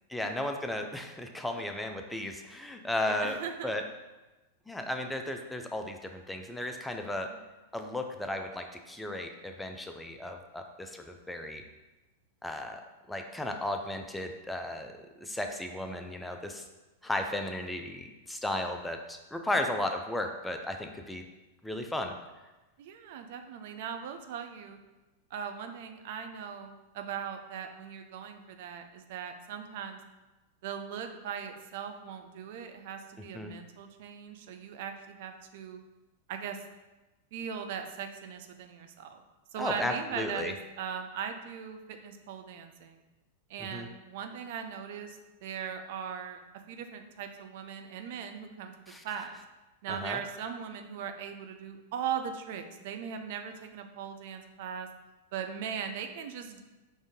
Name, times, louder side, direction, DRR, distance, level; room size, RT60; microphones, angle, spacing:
voice 1, 0.1-3.4 3.6-3.8 4.7-7.3 7.7-11.6 12.4-12.8 13.1-16.7 17.0-21.2 21.6-22.1 33.3-33.5 39.6-40.5 43.6-43.9 48.9-49.0 49.9-50.2, left 1 dB, 5° left, 4 dB, 0.4 m, -35 dB
voice 2, 3.0-3.7 7.3-7.4 19.5-19.7 22.8-24.8 25.3-30.0 30.6-35.8 36.3-36.6 37.3-39.2 39.5-43.0 43.5-46.4 46.7-48.7 49.0-49.4 49.8-54.9 55.3-56.6, right 7 dB, 60° right, 6 dB, 0.4 m, -39 dB
5.0 x 2.6 x 3.6 m, 1.1 s
hypercardioid pair, 100°, 0 cm